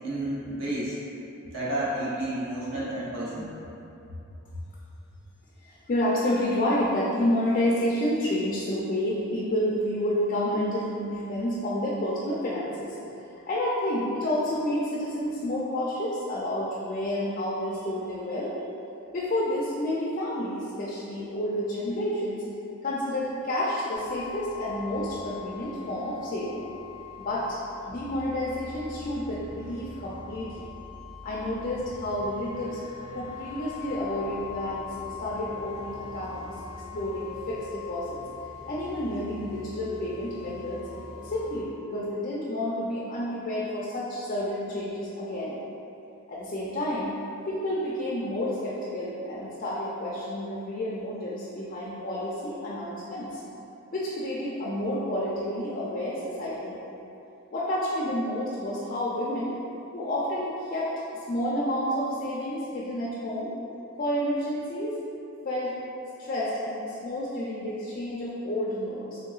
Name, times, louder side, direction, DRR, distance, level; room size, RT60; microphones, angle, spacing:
voice 1, 0.0-0.9 1.4-3.8, right 1 dB, 60° right, -8 dB, 0.7 m, -31 dB
voice 2, 5.6-13.0 13.5-18.5 19.1-22.4 22.8-26.7 27.2-27.6 27.9-30.6 31.2-32.8 33.1-36.5 36.9-38.2 38.7-40.8 41.2-45.6 46.3-47.1 47.5-53.4 53.9-56.8 57.5-59.6 59.9-60.9 61.3-63.5 64.0-65.0 65.4-65.8 66.2-69.2, left 1 dB, 40° left, -6 dB, 0.4 m, -30 dB
sound 1, 23.9-41.6, left 5 dB, 35° right, 0.4 m, -42 dB
3.6 x 3.3 x 2.3 m, 2.9 s
head